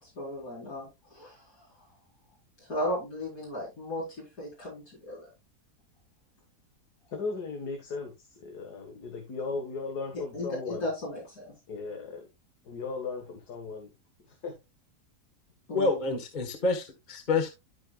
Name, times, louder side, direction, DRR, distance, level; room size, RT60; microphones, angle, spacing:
voice 1, 0.0-1.7 2.7-4.0 4.4-5.3 10.3-11.5 15.7-16.1, left 1 dB, 70° left, -6 dB, 5.1 m, -35 dB
voice 2, 7.1-10.9 11.7-12.3 12.6-13.9 14.2-14.5, left 4 dB, 90° left, 3 dB, 2.2 m, -37 dB
voice 3, 15.7-17.5, left 3 dB, 30° left, 3 dB, 1.4 m, -28 dB
13.5 x 5.5 x 2.4 m, 0.23 s
omnidirectional pair, 1.7 m